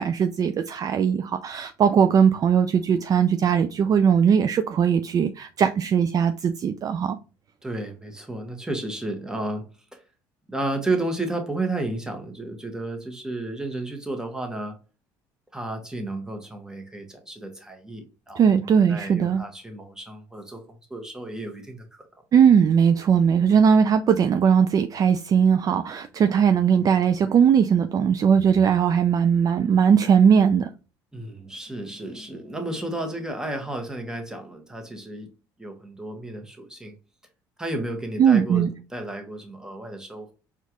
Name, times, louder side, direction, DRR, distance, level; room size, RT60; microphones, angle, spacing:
voice 1, 0.0-7.2 18.4-19.4 22.3-30.7 38.2-38.7, right 7 dB, 40° right, 0.3 m, -19 dB
voice 2, 7.6-9.7 9.9-10.0 10.5-14.8 15.5-20.6 20.9-22.0 31.1-35.3 35.6-36.9 37.6-40.3, right 2 dB, 5° right, 1.1 m, -32 dB
4.4 x 2.4 x 2.9 m
supercardioid pair, 80°, 10 cm